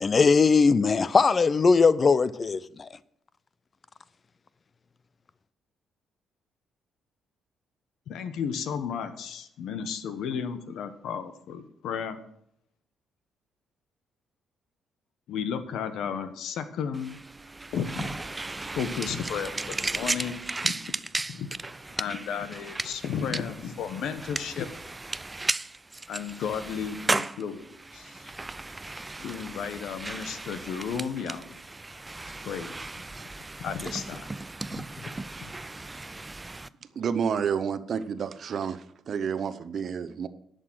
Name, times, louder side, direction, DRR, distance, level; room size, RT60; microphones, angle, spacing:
voice 1, 0.0-2.6, left 4 dB, 35° left, 0.5 m, -20 dB
voice 2, 8.1-12.2 15.3-17.2 17.7-18.1 18.7-20.7 21.3-21.5 22.0-24.7 26.1-28.3 29.2-31.6 32.4-32.7 33.6-34.3 34.8-34.9 35.4-35.5, left 7 dB, 75° left, 1.0 m, -33 dB
sound 1, 16.9-36.7, right 2 dB, 20° right, 0.4 m, -35 dB
voice 3, 37.0-40.3, right 7 dB, 55° right, 0.8 m, -30 dB
11.0 x 6.6 x 6.2 m
cardioid pair, 90°, 0 cm